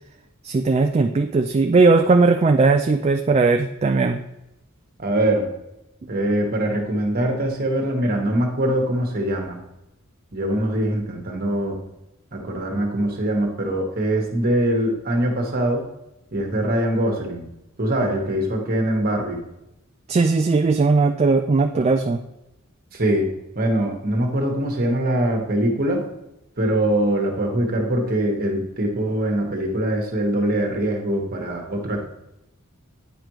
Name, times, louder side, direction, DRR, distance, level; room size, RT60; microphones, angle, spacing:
voice 1, 0.4-4.2 20.1-22.2, right 3 dB, 30° right, 5 dB, 0.3 m, -18 dB
voice 2, 5.0-5.5 6.1-9.6 10.3-11.8 12.3-15.8 16.3-17.5 17.8-19.4 21.7-21.8 22.9-23.3 23.5-26.0 26.6-32.1, right 1 dB, 45° right, 2 dB, 1.3 m, -23 dB
8.9 x 5.0 x 3.1 m, 0.89 s
head